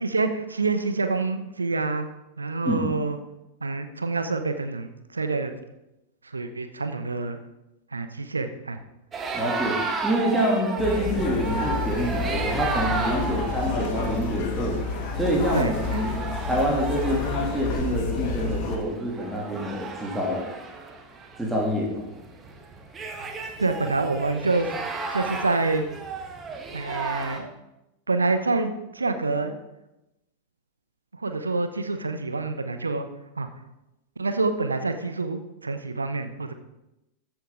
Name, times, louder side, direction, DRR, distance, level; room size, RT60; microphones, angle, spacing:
voice 1, 0.0-2.1 2.4-3.2 3.6-5.5 6.2-7.4 7.9-8.8 15.5-16.0 23.2-23.3 23.6-24.7 25.1-25.8 26.7-27.5 28.1-29.6 31.1-33.1 33.4-33.5 34.2-36.5, right 3 dB, 80° right, 8 dB, 0.9 m, -27 dB
sound 1, 9.1-27.4, right 4 dB, 20° right, 1.5 m, -34 dB
voice 2, 9.3-9.8 10.0-14.8 15.2-16.1 16.4-20.4 21.4-22.1, right 1 dB, 5° right, -3 dB, 2.8 m, -26 dB
sound 2, 10.8-18.8, left 4 dB, 45° left, 1.7 m, -29 dB
14.0 x 7.8 x 3.9 m, 0.94 s
figure-of-eight pair, 90°, 0 cm